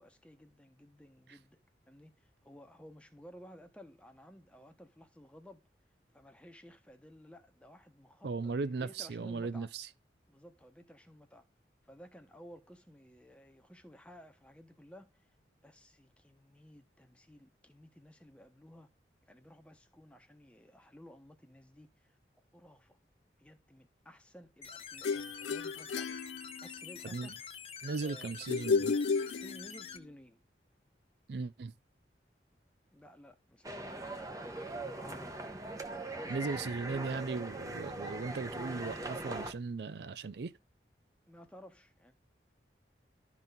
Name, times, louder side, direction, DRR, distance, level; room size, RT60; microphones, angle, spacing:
voice 1, 0.0-1.6 1.9-5.7 6.1-9.7 10.3-11.5 11.9-15.3 15.6-18.9 19.2-22.2 22.5-23.0 23.4-26.2 26.6-27.5 28.0-28.5 29.2-30.4 32.9-35.4 36.0-37.1 41.3-42.1, equal, 5° left, 0.9 m, -55 dB
voice 2, 8.2-9.9 27.0-27.3 27.8-29.0 31.3-31.7 36.3-40.5, right 4 dB, 70° right, 0.4 m, -37 dB
sound 1, 24.6-30.0, left 7 dB, 35° left, 0.7 m, -47 dB
sound 2, 25.0-27.0 28.5-30.0, left 4 dB, 85° left, 0.4 m, -33 dB
sound 3, 33.6-39.5, right 2 dB, 20° right, 0.8 m, -41 dB
12.0 x 4.1 x 4.0 m
head